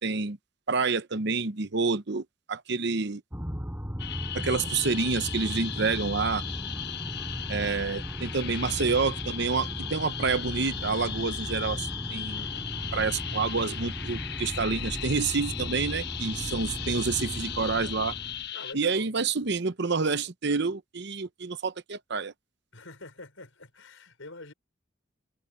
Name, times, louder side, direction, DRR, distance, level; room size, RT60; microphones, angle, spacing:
voice 1, 0.0-0.4 0.7-3.2 4.3-6.4 7.5-12.5 12.9-18.1 18.7-22.3, right 4 dB, 60° right, 0.9 m, -28 dB
sound 1, 3.3-18.5, equal, 10° right, 8.0 m, -37 dB
sound 2, 4.0-18.7, left 11 dB, 55° left, 1.2 m, -37 dB
voice 2, 12.3-12.7 18.5-19.1 22.7-24.5, left 2 dB, 80° left, 5.3 m, -46 dB
head